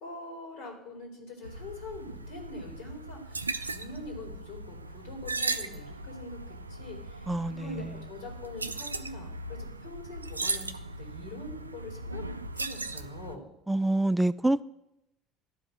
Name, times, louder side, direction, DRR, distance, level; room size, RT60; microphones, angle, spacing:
voice 1, 0.0-13.4, left 2 dB, 65° left, 1 dB, 2.6 m, -44 dB
sound 1, 1.4-13.4, right 3 dB, 85° right, 0.3 m, -38 dB
voice 2, 7.3-8.0 13.7-14.6, right 2 dB, 10° right, 16 dB, 0.4 m, -27 dB
11.5 x 5.2 x 7.4 m, 0.86 s
figure-of-eight pair, 60°, 0 cm